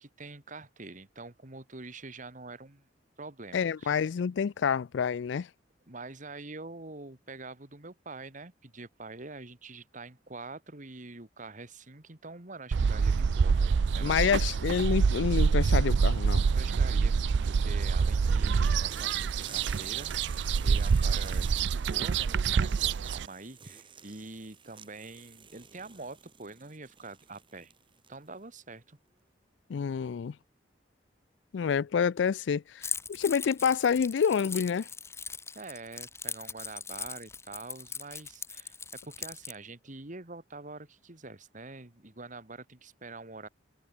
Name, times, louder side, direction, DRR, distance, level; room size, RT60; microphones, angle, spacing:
voice 1, 0.0-2.9 3.2-4.0 5.9-14.3 16.4-20.1 20.6-27.7 28.1-29.0 35.5-43.5, right 3 dB, 45° right, 2.2 m, -45 dB
voice 2, 3.5-5.5 14.0-16.5 29.7-30.3 31.5-34.9, left 6 dB, 75° left, 0.4 m, -28 dB
sound 1, 12.7-23.3, right 5 dB, 65° right, 0.4 m, -26 dB
sound 2, 18.9-28.4, right 6 dB, 25° right, 2.1 m, -50 dB
Keys jangling, 32.8-39.5, left 5 dB, 15° left, 0.8 m, -40 dB
head